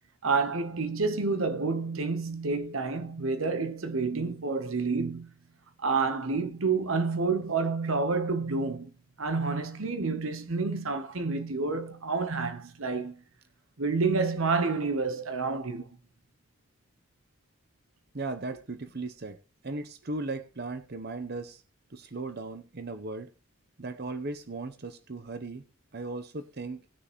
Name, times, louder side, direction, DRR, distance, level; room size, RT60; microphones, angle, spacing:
voice 1, 0.2-5.3 5.8-8.9 9.2-13.2 13.8-15.9, right 4 dB, 70° right, 1.0 m, -29 dB
voice 2, 18.1-19.4 19.6-21.6 21.9-23.3 23.8-25.6 25.9-26.8, right 3 dB, 50° right, 0.8 m, -37 dB
19.0 x 6.5 x 3.0 m
head